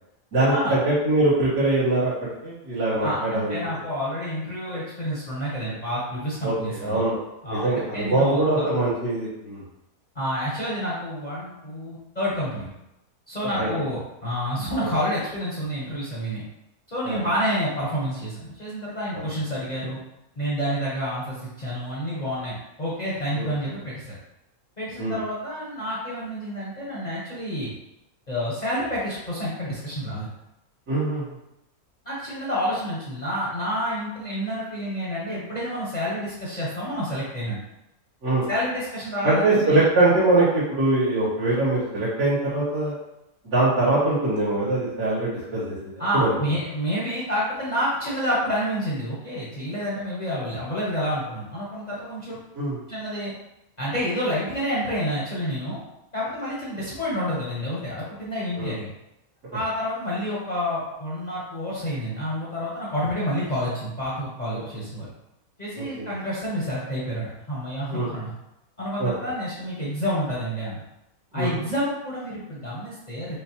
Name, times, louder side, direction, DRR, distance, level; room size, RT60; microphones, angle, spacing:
voice 1, 0.3-3.6 6.4-7.2 7.5-9.6 13.5-13.7 14.8-14.9 17.0-17.2 19.1-19.2 23.3-23.5 25.0-25.2 30.9-31.2 38.2-38.5 39.2-42.9 43.4-46.4 52.5-52.8 58.6-58.7 65.8-66.1 67.9-68.1 69.0-69.1 71.3-71.6, right 2 dB, 90° right, -13 dB, 2.1 m, -23 dB
voice 2, 3.0-7.0 7.4-8.7 10.1-12.7 13.3-16.4 16.9-20.0 20.4-24.1 24.8-27.7 28.3-30.3 32.0-37.6 38.5-39.8 46.0-52.4 52.9-53.3 53.8-55.8 56.1-58.9 59.5-65.1 65.6-68.3 68.8-70.8 71.3-73.4, equal, 35° left, -8 dB, 0.8 m, -29 dB
5.0 x 2.0 x 2.9 m, 0.89 s
omnidirectional pair, 1.6 m